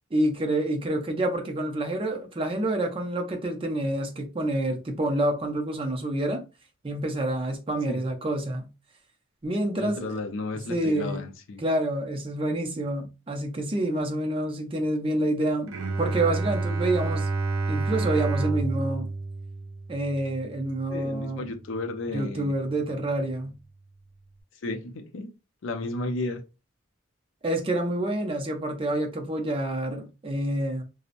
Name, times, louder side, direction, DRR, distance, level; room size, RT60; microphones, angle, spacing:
voice 1, 0.1-6.4 6.8-8.7 9.4-10.2 10.7-11.2 11.6-15.7 16.0-17.3 17.7-19.1 19.9-21.5 22.1-23.5 27.4-30.8, right 1 dB, 25° right, 0.4 m, -28 dB
voice 2, 9.8-11.6 20.9-22.5 24.6-25.3 25.6-26.4, left 2 dB, 70° left, 0.5 m, -33 dB
Bowed string instrument, 15.7-21.4, right 3 dB, 85° right, 0.5 m, -29 dB
2.8 x 2.0 x 2.5 m
head